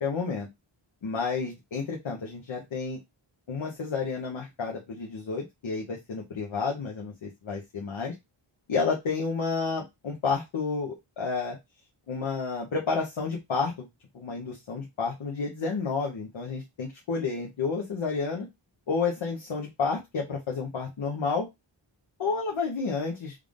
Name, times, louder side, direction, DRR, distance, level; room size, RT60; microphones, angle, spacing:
voice 1, 0.0-0.5 1.0-3.0 3.5-8.1 8.7-11.6 12.1-13.9 14.1-18.5 18.9-21.5 22.2-23.3, left 4 dB, 65° left, -1 dB, 1.0 m, -30 dB
3.5 x 2.5 x 3.4 m, 0.21 s
cardioid pair, 50°, 50 cm